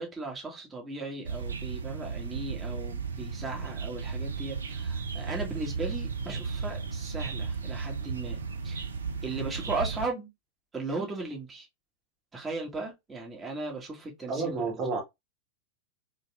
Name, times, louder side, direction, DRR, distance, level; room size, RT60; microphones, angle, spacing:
voice 1, 0.0-8.9 9.2-10.3 10.7-11.7 12.3-14.5, right 3 dB, 15° right, 2.0 m, -37 dB
sound 1, 1.2-10.1, right 5 dB, 70° right, 0.7 m, -35 dB
voice 2, 14.3-15.0, right 4 dB, 30° right, 2.1 m, -30 dB
4.0 x 3.9 x 2.5 m
figure-of-eight pair, 90°, 0 cm